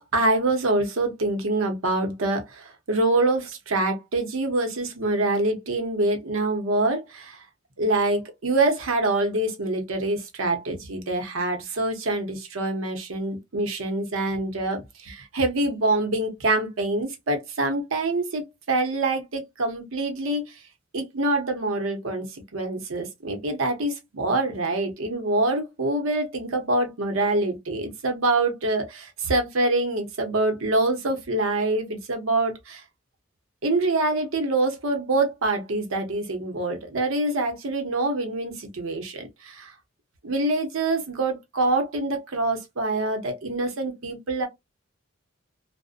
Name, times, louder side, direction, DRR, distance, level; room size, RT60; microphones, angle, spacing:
voice 1, 0.0-7.4 7.8-20.6 20.9-32.8 33.6-39.7 40.2-44.5, right 2 dB, 85° right, 0.8 m, -25 dB
2.5 x 2.1 x 2.4 m
head